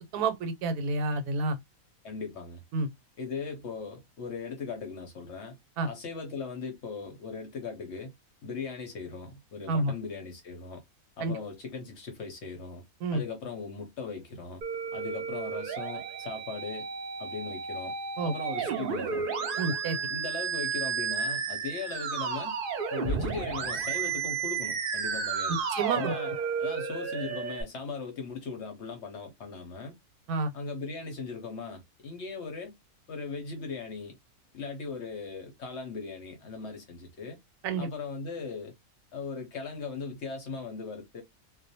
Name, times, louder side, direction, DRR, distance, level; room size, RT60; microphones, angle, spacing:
voice 1, 0.1-1.6 2.7-2.9 5.8-5.9 9.7-9.9 11.2-11.4 13.0-13.2 18.2-18.3 18.7-18.8 19.6-20.0 25.7-26.1 30.3-30.5 37.6-37.9, right 3 dB, 85° right, 1.1 m, -29 dB
voice 2, 2.0-2.6 3.2-5.6 5.9-8.1 8.4-10.8 11.2-12.8 13.1-14.6 14.9-16.9 17.2-17.9 18.2-19.2 20.1-22.6 22.9-25.6 26.0-26.3 26.6-29.9 30.5-32.7 33.1-34.2 34.5-37.4 37.8-38.7 39.1-41.2, left 4 dB, 60° left, 0.7 m, -38 dB
Musical instrument, 14.6-27.6, right 6 dB, 70° right, 0.5 m, -32 dB
2.4 x 2.1 x 2.7 m
omnidirectional pair, 1.6 m